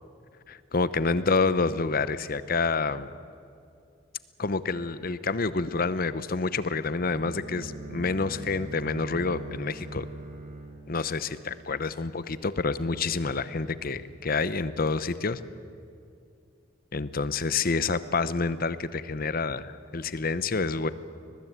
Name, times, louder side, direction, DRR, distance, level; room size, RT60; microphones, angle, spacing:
voice 1, 0.7-3.1 4.4-10.0 10.9-15.4 16.9-20.9, left 4 dB, 50° left, 14 dB, 0.8 m, -28 dB
Bowed string instrument, 7.0-11.9, right 2 dB, 45° right, 5.6 m, -41 dB
22.5 x 20.0 x 8.3 m, 2.5 s
head